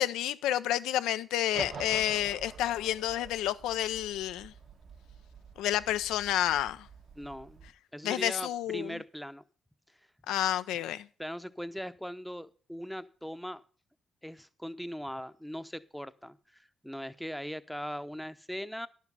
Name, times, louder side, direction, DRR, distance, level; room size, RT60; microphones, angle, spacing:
voice 1, 0.0-4.5 5.6-6.9 8.0-9.0 10.3-11.1, left 12 dB, 90° left, 0.5 m, -30 dB
sound 1, 1.5-7.7, right 5 dB, 65° right, 1.5 m, -47 dB
voice 2, 7.2-7.7 7.9-9.4 11.2-13.6 14.2-18.9, equal, ahead, 0.7 m, -40 dB
10.5 x 7.3 x 5.4 m
supercardioid pair, 65°, 0 cm